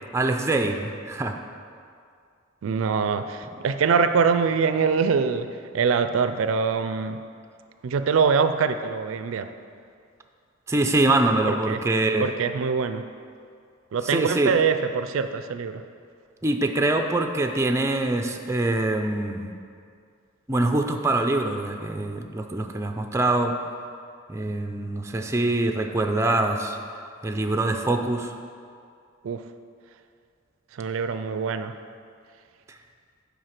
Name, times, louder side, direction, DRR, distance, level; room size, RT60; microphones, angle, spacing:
voice 1, 0.1-1.4 10.7-12.3 14.0-14.6 16.4-19.5 20.5-23.6 24.3-26.8 27.2-28.3 32.7-32.8, right 2 dB, 15° right, 4 dB, 0.4 m, -24 dB
voice 2, 2.6-5.5 5.7-7.2 7.8-9.5 11.4-11.8 12.2-13.0 13.9-15.8 29.2-29.4 30.7-31.7, right 5 dB, 80° right, 10 dB, 0.4 m, -24 dB
7.9 x 5.0 x 5.8 m, 2.3 s
head